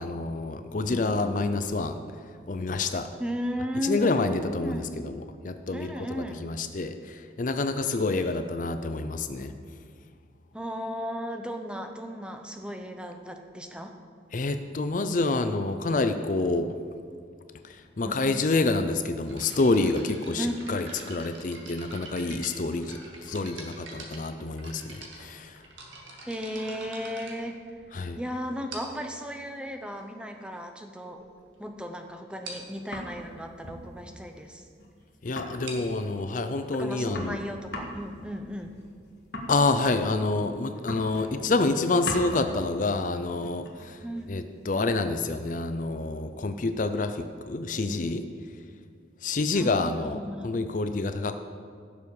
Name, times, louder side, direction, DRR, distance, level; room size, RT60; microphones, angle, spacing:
voice 1, 0.0-2.0 2.5-3.1 3.8-9.5 14.3-16.8 17.6-25.6 27.9-28.2 35.2-37.4 39.5-48.3 49.2-51.4, left 3 dB, 40° left, 9 dB, 0.5 m, -28 dB
voice 2, 3.2-4.9 5.7-6.4 7.9-8.0 10.5-13.9 18.0-18.2 20.4-20.5 26.3-27.6 28.2-31.2 31.6-34.6 36.8-38.7 44.0-44.4 49.5-50.5, equal, 5° right, 5 dB, 0.7 m, -35 dB
sound 1, 19.3-28.1 28.7-29.1 30.0-30.1 30.7-30.8 31.0-31.2 31.6-31.7 31.9-32.0 32.4-32.7 35.4-38.9, right 2 dB, 80° right, 1.9 m, -46 dB
sound 2, 32.5-33.3 33.6-33.9 34.2-34.3 34.5-34.6 34.8-34.9 35.2-36.1 36.5-36.6 36.8-40.4 40.7-41.4 41.7-42.4 43.3-45.1, left 1 dB, 60° left, 1.7 m, -40 dB
16.0 x 7.0 x 4.8 m, 2.2 s
head